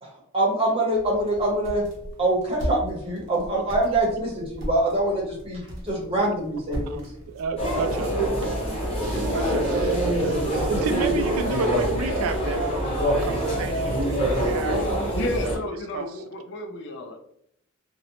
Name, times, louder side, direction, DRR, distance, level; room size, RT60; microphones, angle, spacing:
voice 1, 0.0-1.8 2.2-7.0, right 1 dB, 25° right, -3 dB, 0.7 m, -24 dB
sound 1, 0.9-11.4, equal, 60° right, 0.7 m, -39 dB
voice 2, 7.3-8.1 9.0-15.1 15.4-15.5 15.9-16.1, right 4 dB, 85° right, 8 dB, 0.3 m, -31 dB
sound 2, 7.6-15.6, right 1 dB, 30° left, 0.8 m, -25 dB
voice 3, 15.1-17.2, left 2 dB, 55° left, 4 dB, 0.4 m, -32 dB
2.5 x 2.0 x 2.8 m, 0.72 s
head